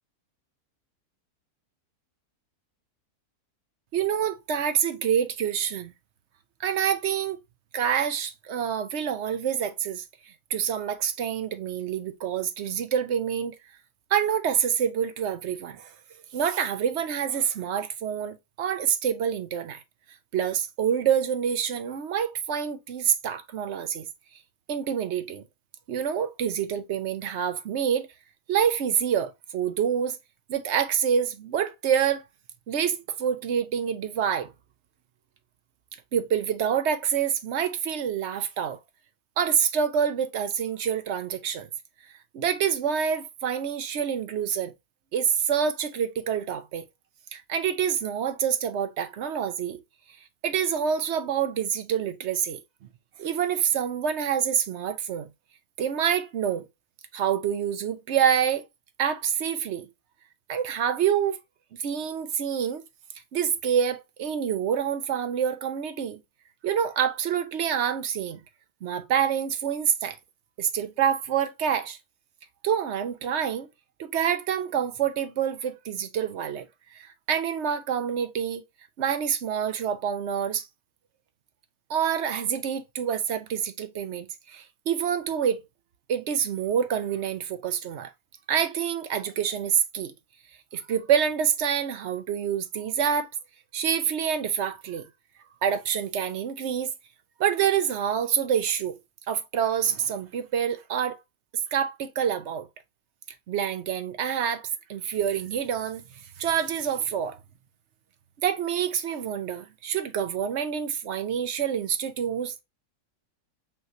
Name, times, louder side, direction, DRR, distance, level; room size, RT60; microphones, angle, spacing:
voice 1, 3.9-5.9 6.6-7.4 7.7-10.0 10.5-13.5 14.1-15.9 16.3-19.8 20.3-24.1 24.7-25.4 25.9-28.1 28.5-30.2 30.5-32.2 32.7-34.5 36.1-38.8 39.4-41.7 42.3-44.7 45.1-46.9 47.3-49.8 50.4-52.6 53.2-55.3 55.8-56.6 57.1-58.6 59.0-59.9 60.5-61.4 61.8-62.8 63.3-66.2 66.6-68.4 68.8-70.2 70.6-72.0 72.6-73.7 74.0-76.7 76.9-78.6 79.0-80.7 81.9-85.6 86.1-88.1 88.5-90.1 90.7-93.3 93.7-95.0 95.6-96.9 97.4-99.0 99.3-101.2 101.7-102.7 103.5-106.0 106.4-107.4 108.4-112.6, right 8 dB, 60° right, 0.8 m, -27 dB
5.7 x 3.0 x 2.6 m
omnidirectional pair, 1.6 m